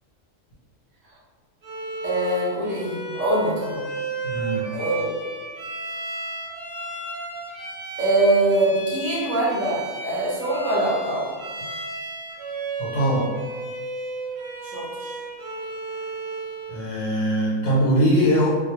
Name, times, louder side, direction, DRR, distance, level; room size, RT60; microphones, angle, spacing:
Bowed string instrument, 1.6-16.8, right 3 dB, 50° right, 0.7 m, -33 dB
voice 1, 2.0-3.8 4.7-5.2 8.0-11.3 14.6-15.1, right 2 dB, 15° right, -8 dB, 0.5 m, -23 dB
voice 2, 4.2-4.7 12.8-13.4 16.7-18.5, equal, 85° left, -7 dB, 1.0 m, -21 dB
2.2 x 2.1 x 2.9 m, 1.4 s
omnidirectional pair, 1.4 m